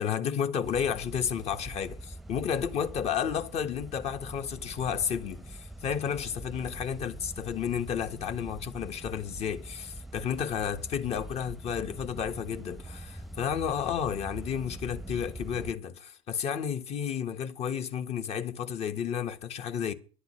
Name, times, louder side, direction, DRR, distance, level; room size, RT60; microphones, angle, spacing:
voice 1, 0.0-19.9, left 8 dB, 45° left, 1.6 m, -32 dB
sound 1, 0.6-15.7, right 1 dB, ahead, 0.8 m, -44 dB
22.5 x 11.5 x 3.3 m
supercardioid pair, 95°, 15 cm